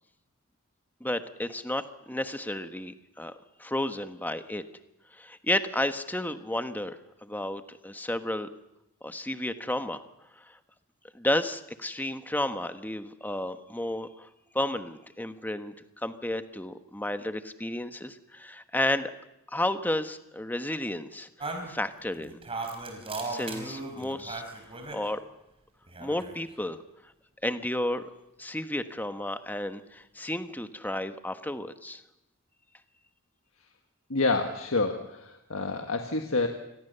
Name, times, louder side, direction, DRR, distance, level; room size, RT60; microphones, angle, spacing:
voice 1, 1.0-4.6 5.1-8.5 9.0-10.0 10.4-10.6 11.1-14.3 14.5-19.1 19.5-21.3 21.6-22.4 23.2-24.4 24.9-25.2 26.0-26.8 27.4-28.0 28.4-32.0, left 1 dB, 10° left, 9 dB, 1.3 m, -32 dB
sound 1, 21.4-25.0 25.8-26.5, right 3 dB, 25° right, 4.7 m, -37 dB
voice 2, 34.1-36.5, left 3 dB, 65° left, 5 dB, 1.7 m, -28 dB
28.0 x 21.0 x 6.9 m, 0.89 s
head